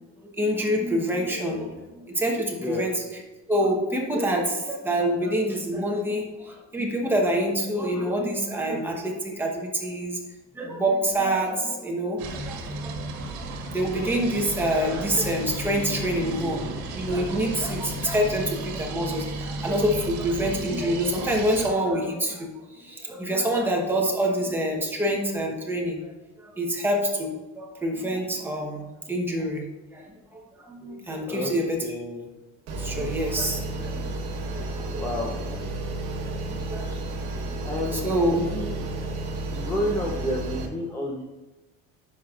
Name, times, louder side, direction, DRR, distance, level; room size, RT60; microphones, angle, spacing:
voice 1, 0.4-2.9 3.5-10.2 10.5-13.4 13.7-26.0 26.4-29.6 29.9-30.1 30.3-31.8 32.8-34.0 34.5-35.0 36.1-37.0 37.9-38.4 39.6-39.7, right 1 dB, 5° right, -1 dB, 1.0 m, -26 dB
sound 1, 12.2-21.7, right 2 dB, 75° right, 1.4 m, -34 dB
voice 2, 31.8-32.3 35.0-35.3 36.9-37.0 37.6-38.8 39.5-41.2, left 1 dB, 10° left, -1 dB, 0.6 m, -30 dB
sound 2, 32.7-40.7, right 2 dB, 60° right, 1.2 m, -32 dB
10.0 x 6.0 x 2.4 m, 1.1 s
cardioid pair, 165°, 30 cm